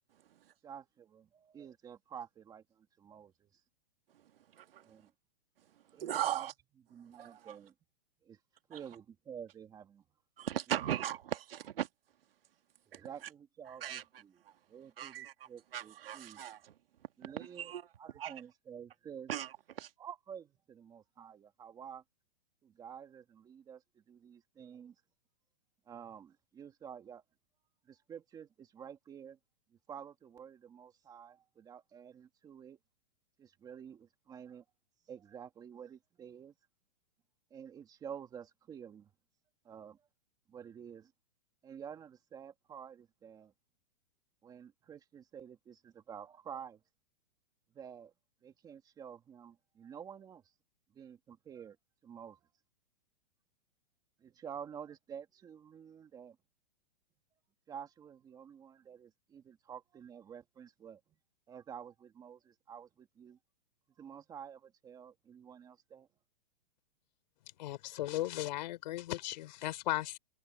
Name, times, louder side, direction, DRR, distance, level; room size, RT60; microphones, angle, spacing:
voice 1, 0.6-3.5 4.8-5.1 5.9-6.5 6.9-7.7 8.2-8.4 8.7-10.0 12.9-14.4 14.7-16.4 17.2-17.7 18.0-19.3 20.0-22.0 22.6-24.9 25.9-27.2 27.9-29.4 29.9-32.8 33.4-34.6 35.1-36.5 37.5-39.1 39.6-40.0 40.5-41.1 41.6-43.5 44.4-46.8 47.7-48.1 48.4-50.4 50.9-51.8 52.0-52.4 54.2-56.4 57.7-61.0 61.5-63.4 64.0-66.1, right 8 dB, 10° right, 2.1 m, -50 dB
voice 2, 4.5-4.8 6.0-6.5 7.1-7.6 8.7-8.8 10.4-11.9 12.9-13.0 13.8-14.0 15.0-16.7 17.2-17.9 18.2-18.3 19.3-19.9, right 11 dB, 70° right, 2.3 m, -38 dB
voice 3, 67.6-70.2, left 15 dB, 45° left, 4.6 m, -36 dB
hypercardioid pair, 165°, 30 cm